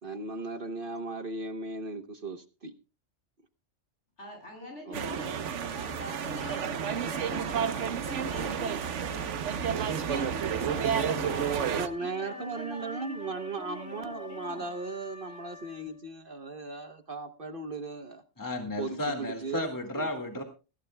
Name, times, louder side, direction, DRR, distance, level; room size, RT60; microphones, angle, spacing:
voice 1, 0.0-2.7 4.8-5.2 11.7-18.2 18.8-19.7 19.9-20.1, right 3 dB, 50° right, 1.1 m, -37 dB
voice 2, 4.2-8.8 9.1-9.4 10.0-14.6, left 1 dB, 70° left, 8.5 m, -44 dB
sound 1, 4.9-11.9, right 7 dB, 70° right, 1.2 m, -30 dB
Wind instrument woodwind instrument, 11.7-16.2, left 2 dB, 85° left, 1.9 m, -49 dB
voice 3, 18.4-20.4, left 1 dB, 15° left, 1.9 m, -33 dB
20.5 x 15.0 x 2.2 m
omnidirectional pair, 1.3 m